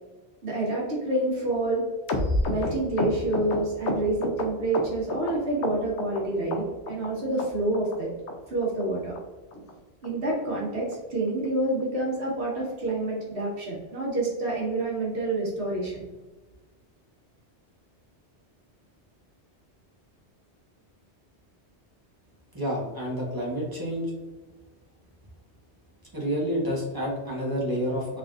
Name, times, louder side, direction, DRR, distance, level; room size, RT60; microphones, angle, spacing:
voice 1, 0.4-1.8 2.4-8.1 8.5-9.1 9.5-9.6 10.0-16.1, right 2 dB, 70° right, -5 dB, 1.6 m, -28 dB
sound 1, 2.1-5.3 5.6-6.2 6.5-7.1 7.4-7.5 7.7-8.0 8.3-8.4 8.6-8.8 9.1-9.2 9.5-9.7 10.0-10.1 10.4-10.6 10.9-11.0 11.3-11.5 11.8-11.9, left 2 dB, 80° left, 1.0 m, -29 dB
voice 2, 22.5-24.1 26.1-28.2, equal, 20° right, -4 dB, 1.1 m, -29 dB
3.9 x 3.5 x 2.4 m, 1.2 s
omnidirectional pair, 1.2 m